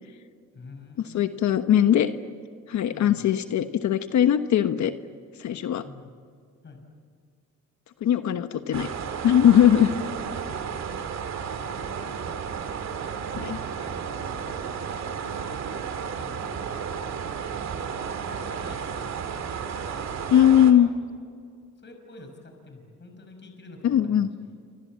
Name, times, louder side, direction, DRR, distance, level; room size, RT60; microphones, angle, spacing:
voice 1, 0.5-1.8 2.9-3.2 5.6-6.1 6.6-6.8 10.1-11.1 11.4-12.4 13.6-14.6 15.3-16.6 16.9-17.2 18.1-19.4 19.7-20.1 20.4-21.0 21.8-24.6, left 3 dB, 35° left, 4 dB, 5.7 m, -48 dB
voice 2, 1.1-2.1 2.7-4.9 5.4-5.8 8.0-8.9 9.2-9.9 13.3-13.6 20.3-20.9 23.8-24.3, left 10 dB, 70° left, 9 dB, 1.2 m, -20 dB
sound 1, 8.7-20.7, right 7 dB, 60° right, 2.6 m, -33 dB
28.5 x 26.5 x 7.5 m, 2.2 s
cardioid pair, 90°, 30 cm